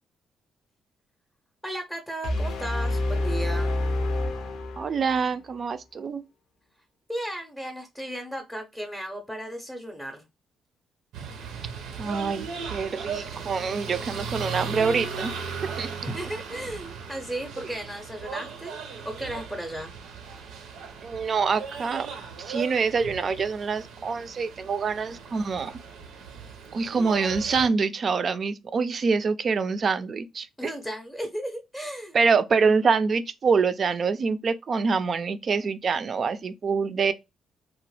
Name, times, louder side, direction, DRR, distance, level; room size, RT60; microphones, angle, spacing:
voice 1, 1.6-3.8 7.1-10.3 16.0-19.9 30.6-32.2, right 1 dB, 5° left, 0.6 m, -35 dB
sound 1, 2.2-5.3, left 2 dB, 85° left, 0.6 m, -27 dB
voice 2, 4.8-6.2 12.0-15.3 15.8-15.9 21.0-22.1 22.4-25.7 26.7-30.7 32.1-37.1, right 5 dB, 45° right, 0.4 m, -25 dB
sound 2, 11.1-27.7, right 5 dB, 85° right, 0.6 m, -37 dB
2.9 x 2.0 x 3.1 m
cardioid pair, 90°, 0 cm